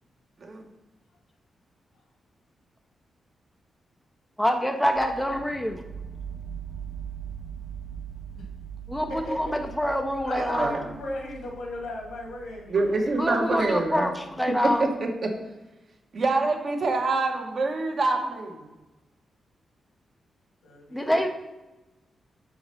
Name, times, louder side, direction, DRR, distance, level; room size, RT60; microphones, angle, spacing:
voice 1, 4.4-5.8 8.9-9.1 9.4-10.8 13.2-14.9 20.9-21.3, equal, 5° left, 4 dB, 0.5 m, -26 dB
sound 1, 4.9-14.8, right 8 dB, 70° right, 1.3 m, -41 dB
voice 2, 9.1-9.5 10.2-13.4 20.6-21.3, left 1 dB, 85° left, 0 dB, 2.1 m, -37 dB
voice 3, 10.3-10.8 12.7-14.1 14.6-15.3 16.1-18.6, right 3 dB, 40° right, 3 dB, 1.0 m, -26 dB
6.3 x 4.8 x 5.4 m, 1.1 s
wide cardioid pair, 165°, 0 cm